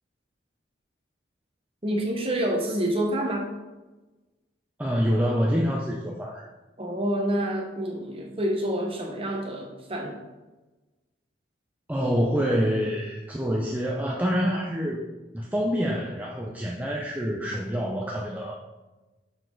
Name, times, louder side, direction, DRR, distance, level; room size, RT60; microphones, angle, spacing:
voice 1, 1.8-3.5 6.8-10.2, right 1 dB, 30° right, 1 dB, 1.1 m, -28 dB
voice 2, 4.8-6.5 11.9-15.1 15.3-18.5, equal, 10° right, -2 dB, 0.5 m, -26 dB
6.8 x 6.1 x 3.9 m, 1.1 s
head